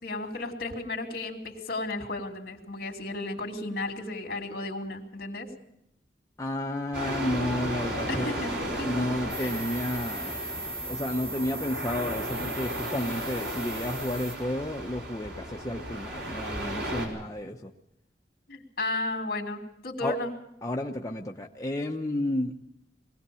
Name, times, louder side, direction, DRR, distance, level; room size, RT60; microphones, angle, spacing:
voice 1, 0.0-5.5 8.1-8.9 9.4-9.5 18.5-20.3, left 2 dB, 60° left, 3 dB, 2.8 m, -34 dB
voice 2, 6.4-8.4 8.8-10.4 10.9-17.7 20.0-20.2 20.6-22.5, left 1 dB, 20° left, 0 dB, 0.8 m, -32 dB
sound 1, 6.9-17.1, right 1 dB, 75° right, 5.0 m, -35 dB
sound 2, 9.3-14.4, right 2 dB, 45° right, 4.7 m, -38 dB
22.5 x 17.0 x 7.0 m, 0.80 s
head